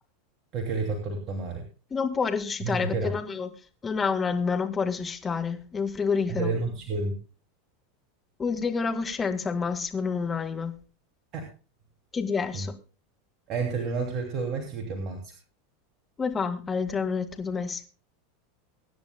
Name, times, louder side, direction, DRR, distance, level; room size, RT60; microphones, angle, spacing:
voice 1, 0.5-1.6 2.6-3.1 6.3-7.2 11.3-11.5 12.5-12.6 13.5-15.3, right 4 dB, 45° right, 3 dB, 2.8 m, -30 dB
voice 2, 1.9-3.5 3.8-6.5 8.4-10.7 12.1-12.7 16.2-17.9, left 5 dB, 20° left, 8 dB, 1.9 m, -28 dB
23.5 x 10.5 x 2.3 m, 0.34 s
hypercardioid pair, 95°, 0 cm